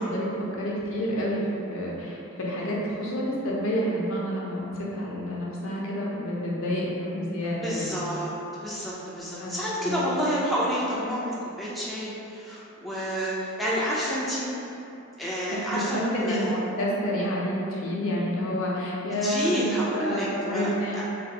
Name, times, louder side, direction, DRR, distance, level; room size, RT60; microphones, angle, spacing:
voice 1, 0.0-8.0 9.4-9.5 9.8-10.2 15.7-21.0, equal, 65° left, -4 dB, 0.6 m, -29 dB
voice 2, 7.6-14.5 15.2-16.5 19.2-21.0, equal, ahead, -8 dB, 0.3 m, -29 dB
3.2 x 2.2 x 2.7 m, 2.7 s
head